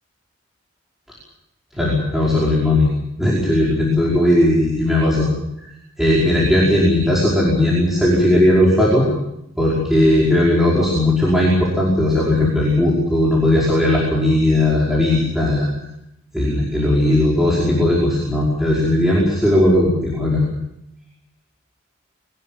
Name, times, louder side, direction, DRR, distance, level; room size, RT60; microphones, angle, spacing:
voice 1, 1.7-2.9 3.2-5.3 6.0-9.1 9.6-15.7 16.3-20.4, left 1 dB, ahead, -6 dB, 5.2 m, -17 dB
24.0 x 19.5 x 7.4 m, 0.82 s
head